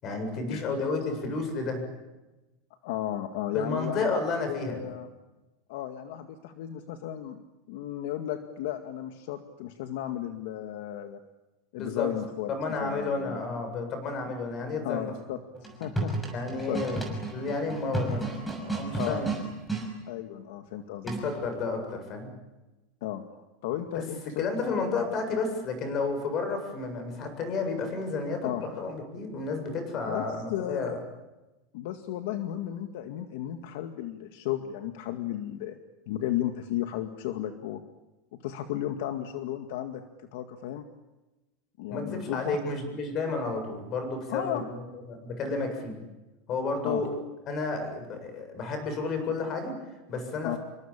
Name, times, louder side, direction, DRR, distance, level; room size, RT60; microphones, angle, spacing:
voice 1, 0.0-1.8 3.5-4.8 11.8-12.1 12.5-15.1 16.3-17.0 17.3-19.3 21.0-22.3 23.9-24.0 24.4-31.0 41.9-44.8 45.2-46.0 46.5-47.1 47.5-49.7 50.1-50.6, left 3 dB, 30° left, 7 dB, 7.7 m, -31 dB
voice 2, 2.8-4.2 4.5-5.1 5.7-7.4 7.7-11.2 11.7-13.4 14.8-15.4 15.8-16.1 16.5-16.8 19.0-19.2 20.1-21.0 23.0-23.2 23.6-25.1 28.4-28.7 30.0-31.0 31.7-35.8 36.1-37.8 38.3-40.8 41.8-42.6 44.3-44.6 46.8-47.0 50.4-50.6, left 12 dB, 65° left, 7 dB, 2.0 m, -34 dB
sound 1, 15.6-19.9 21.1-21.5, right 3 dB, ahead, 6.3 m, -32 dB
28.0 x 23.5 x 8.9 m, 1.1 s
supercardioid pair, 165°, 0 cm